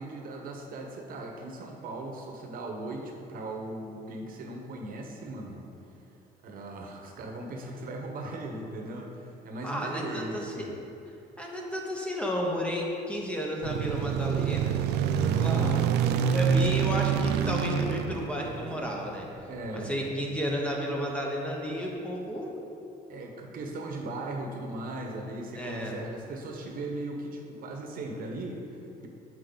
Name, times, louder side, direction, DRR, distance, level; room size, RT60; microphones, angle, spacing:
voice 1, 0.0-5.6 6.4-10.7 15.0-15.4 19.5-20.1 23.1-29.1, right 2 dB, 55° right, 2 dB, 1.0 m, -38 dB
voice 2, 9.6-10.7 11.4-14.8 15.3-15.9 16.3-19.3 19.7-22.6 25.5-25.9, equal, 5° left, -1 dB, 0.9 m, -32 dB
sound 1, 13.6-19.1, right 7 dB, 85° right, 0.4 m, -27 dB
8.4 x 4.6 x 3.9 m, 2.8 s
cardioid pair, 110°, 17 cm